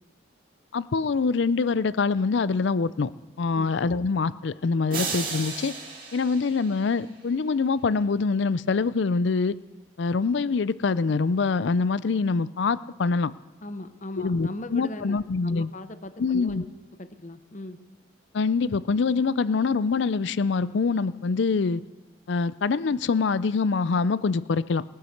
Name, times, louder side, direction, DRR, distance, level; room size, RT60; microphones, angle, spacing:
voice 1, 0.7-3.1 3.4-5.7 6.1-9.6 10.0-13.3 14.2-15.7 16.2-16.6 18.3-21.8 22.3-24.8, left 4 dB, 65° left, 17 dB, 0.4 m, -24 dB
sound 1, 4.9-7.3, right 4 dB, 45° right, 2.4 m, -34 dB
voice 2, 13.6-17.8, left 1 dB, 40° left, 11 dB, 0.8 m, -39 dB
20.0 x 9.5 x 6.5 m, 1.2 s
head